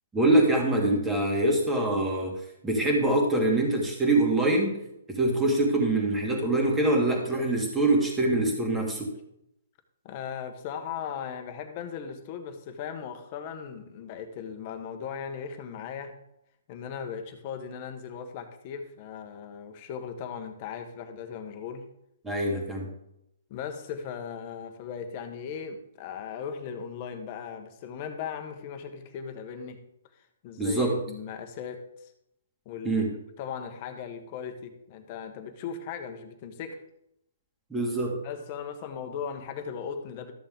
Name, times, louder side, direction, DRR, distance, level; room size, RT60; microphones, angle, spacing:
voice 1, 0.1-2.3 2.6-4.7 5.1-9.1 22.2-22.9 30.6-31.0 32.8-33.1 37.7-38.2, right 2 dB, 10° right, 0 dB, 2.3 m, -24 dB
voice 2, 10.0-16.1 16.7-21.9 23.5-29.8 30.4-32.1 32.6-33.1 33.4-36.8 38.2-40.3, left 7 dB, 40° left, 6 dB, 1.4 m, -38 dB
13.0 x 6.8 x 3.8 m, 0.80 s
hypercardioid pair, 145°, 0 cm